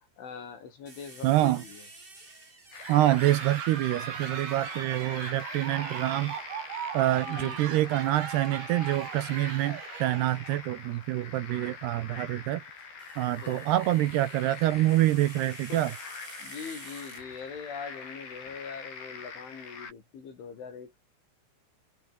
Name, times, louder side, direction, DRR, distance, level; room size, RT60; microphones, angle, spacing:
voice 1, 0.2-1.9 7.3-7.8 13.3-13.9 15.7-15.9 16.4-21.0, left 6 dB, 85° left, 8.5 m, -42 dB
sound 1, 0.8-4.2 7.0-8.5 10.3-10.5 12.6-17.7, right 2 dB, 15° right, 2.2 m, -52 dB
voice 2, 1.2-1.6 2.9-6.4 6.9-12.6 13.2-15.9, right 15 dB, 75° right, 2.7 m, -26 dB
sound 2, 2.7-19.9, left 5 dB, 60° left, 8.3 m, -44 dB
sound 3, 2.8-10.7, right 8 dB, 60° right, 4.5 m, -39 dB
omnidirectional pair, 5.3 m